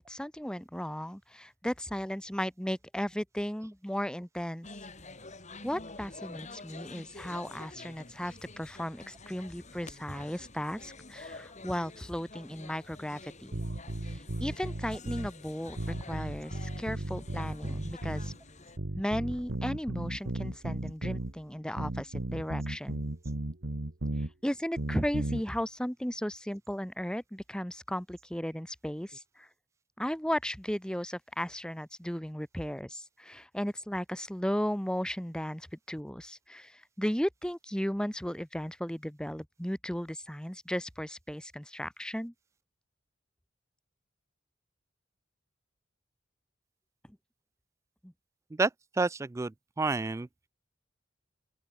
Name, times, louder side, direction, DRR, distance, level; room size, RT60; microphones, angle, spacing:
voice 1, 0.1-4.7 5.6-13.6 14.0-15.8 16.1-18.3 18.9-23.0 24.4-29.5 30.0-42.3 48.0-48.1, equal, 5° left, 1.6 m, -35 dB
sound 1, 4.6-18.8, left 3 dB, 40° left, 6.8 m, -48 dB
sound 2, 13.5-15.3 15.8-18.4 18.8-21.3 21.8-24.3 24.8-25.4, right 1 dB, 65° right, 1.6 m, -35 dB
voice 2, 48.5-50.3, right 3 dB, 15° right, 0.3 m, -30 dB
open air
head